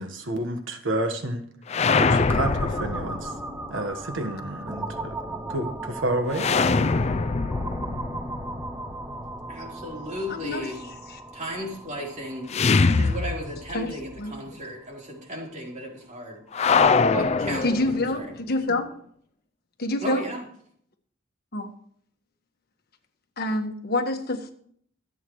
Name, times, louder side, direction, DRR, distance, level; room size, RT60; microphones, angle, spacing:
voice 1, 0.0-1.4 2.0-3.3 3.7-6.5, right 1 dB, 70° right, 6 dB, 1.4 m, -30 dB
sound 1, 1.7-3.7 6.3-9.3 12.5-13.9 14.2-14.3 16.5-18.3, left 4 dB, 35° left, 0.4 m, -23 dB
sound 2, 2.3-15.9, right 2 dB, 10° right, 0.6 m, -37 dB
voice 2, 9.5-10.9 11.3-12.5 12.9-16.4 17.1-18.3 20.0-20.4, equal, 40° right, -1 dB, 3.8 m, -35 dB
voice 3, 10.3-10.7 11.1-11.2 13.7-13.9 14.2-14.6 17.6-18.9 19.8-20.2 21.5-21.7 23.4-24.5, left 2 dB, 50° left, 4 dB, 1.5 m, -27 dB
24.5 x 8.4 x 3.1 m, 0.62 s
head